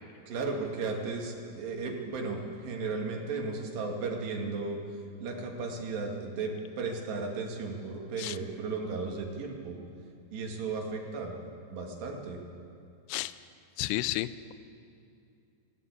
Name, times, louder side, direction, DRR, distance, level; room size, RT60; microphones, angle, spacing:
voice 1, 0.3-4.8 5.2-9.8 10.3-11.4 11.7-12.4, right 4 dB, 75° right, 1 dB, 4.4 m, -35 dB
voice 2, 13.8-14.5, left 16 dB, 80° left, 15 dB, 2.5 m, -32 dB
20.5 x 16.5 x 8.5 m, 2.7 s
omnidirectional pair, 4.9 m